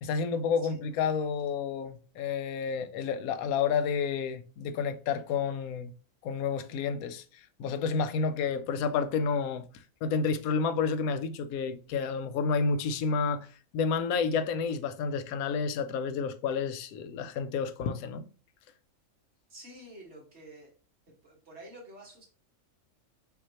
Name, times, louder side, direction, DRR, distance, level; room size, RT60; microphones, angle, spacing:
voice 1, 0.0-5.9 6.2-7.2 7.6-9.6 10.0-13.5 13.7-18.3, left 5 dB, 85° left, 1.0 m, -30 dB
voice 2, 19.5-20.7 21.2-22.3, right 1 dB, 50° right, 1.8 m, -49 dB
5.6 x 2.7 x 2.8 m
omnidirectional pair, 1.5 m